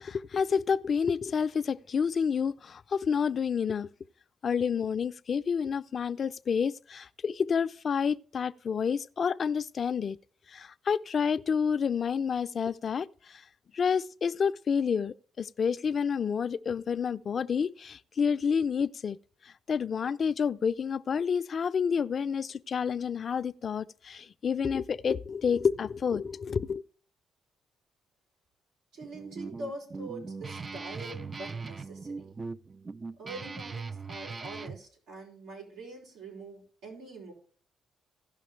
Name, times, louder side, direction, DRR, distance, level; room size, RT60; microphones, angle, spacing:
voice 1, 0.0-3.9 4.4-10.2 10.5-13.4 13.7-19.2 19.7-26.8, left 6 dB, 45° left, 0.4 m, -29 dB
voice 2, 28.9-32.3 33.2-37.3, right 2 dB, 90° right, 5.2 m, -44 dB
Guitar, 29.0-34.8, right 4 dB, 30° right, 0.4 m, -40 dB
16.5 x 5.7 x 3.2 m
cardioid pair, 90°, 0 cm